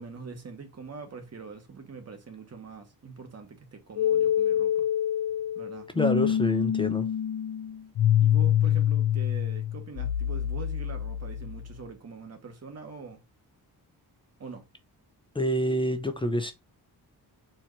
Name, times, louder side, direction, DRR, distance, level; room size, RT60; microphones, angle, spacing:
voice 1, 0.0-4.9 5.5-5.9 8.2-13.2 14.4-14.7, right 4 dB, 40° right, 1.1 m, -43 dB
sound 1, 4.0-11.8, left 10 dB, 80° left, 0.6 m, -26 dB
voice 2, 5.9-7.1 15.3-16.5, equal, 15° left, 0.6 m, -27 dB
4.4 x 2.5 x 4.5 m
wide cardioid pair, 155°, 40 cm